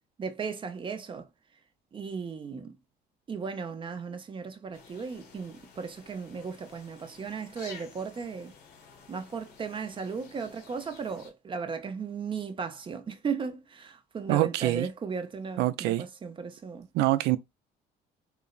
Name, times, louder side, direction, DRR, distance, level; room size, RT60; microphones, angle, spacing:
voice 1, 0.2-1.3 1.9-2.8 3.3-8.5 9.1-16.9, right 5 dB, 30° right, 0.5 m, -36 dB
sound 1, 4.7-11.3, left 5 dB, 85° left, 1.1 m, -52 dB
voice 2, 14.3-14.9 15.6-16.0 16.9-17.4, right 16 dB, 85° right, 0.4 m, -25 dB
3.9 x 2.0 x 2.3 m
cardioid pair, 110°, 17 cm